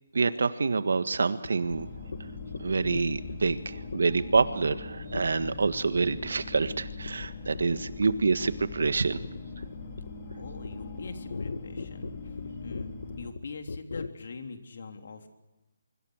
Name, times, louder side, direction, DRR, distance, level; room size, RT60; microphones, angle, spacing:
voice 1, 0.1-1.9 2.6-9.2, right 4 dB, 75° right, 12 dB, 1.7 m, -27 dB
sound 1, 1.1-1.2 1.4-1.7 2.1-2.2 2.5-2.6 2.9-3.5 3.9-4.0 4.3-4.4 4.7-4.8 5.1-5.7 6.0-6.2 6.5-6.8 7.1-7.3 7.5-7.8 8.0-14.1, left 4 dB, 75° left, 1.4 m, -38 dB
sound 2, 1.7-13.3, left 4 dB, 35° left, 3.2 m, -41 dB
voice 2, 10.3-15.3, left 4 dB, 60° left, 5 dB, 3.4 m, -43 dB
25.0 x 24.0 x 6.5 m, 1.1 s
hypercardioid pair, 165°, 0 cm